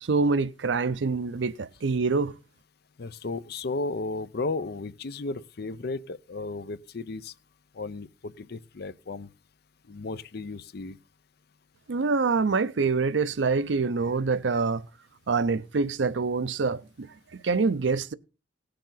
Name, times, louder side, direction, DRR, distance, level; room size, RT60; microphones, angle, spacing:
voice 1, 0.0-2.3 11.9-14.9 15.3-18.1, right 4 dB, 80° right, 0.6 m, -26 dB
voice 2, 3.0-7.3 7.7-9.3 9.9-11.0, left 3 dB, 60° left, 0.6 m, -34 dB
18.0 x 6.7 x 3.9 m
head